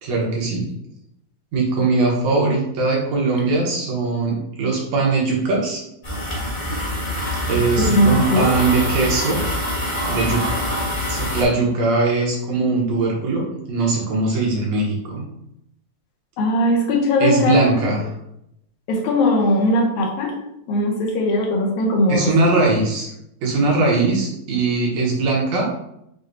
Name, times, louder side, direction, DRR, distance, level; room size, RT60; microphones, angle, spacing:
voice 1, 0.0-0.7 1.5-5.8 7.5-9.4 10.1-10.6 11.1-15.2 17.2-18.1 22.1-23.1 23.4-25.7, right 3 dB, 70° right, -3 dB, 2.2 m, -20 dB
sound 1, 6.0-11.4, equal, 25° left, 1.1 m, -24 dB
voice 2, 7.8-8.5 16.4-17.6 18.9-20.3 20.7-22.3, left 1 dB, 80° left, 0 dB, 2.2 m, -19 dB
6.3 x 2.8 x 2.6 m, 0.81 s
omnidirectional pair, 3.4 m